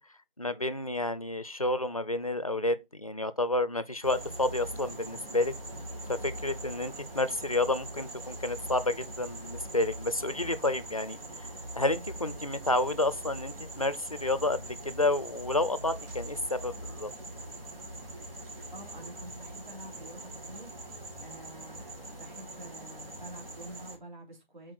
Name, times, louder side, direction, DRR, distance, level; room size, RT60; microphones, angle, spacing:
voice 1, 0.4-5.5 6.1-17.1, left 2 dB, 40° left, 0.4 m, -30 dB
sound 1, 4.0-24.0, right 1 dB, 70° right, 3.5 m, -42 dB
voice 2, 18.7-24.7, right 1 dB, 50° right, 3.2 m, -48 dB
6.2 x 4.4 x 4.2 m
figure-of-eight pair, 175°, 29 cm